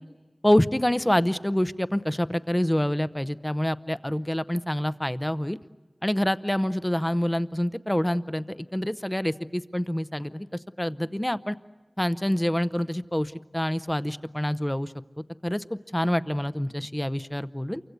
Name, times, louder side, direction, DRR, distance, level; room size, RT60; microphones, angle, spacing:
voice 1, 0.4-5.6 6.0-10.5 10.8-11.6 12.0-14.9 15.4-17.8, left 1 dB, 20° left, 14 dB, 0.8 m, -26 dB
28.5 x 24.5 x 8.2 m, 1.3 s
wide cardioid pair, 45°, 0 cm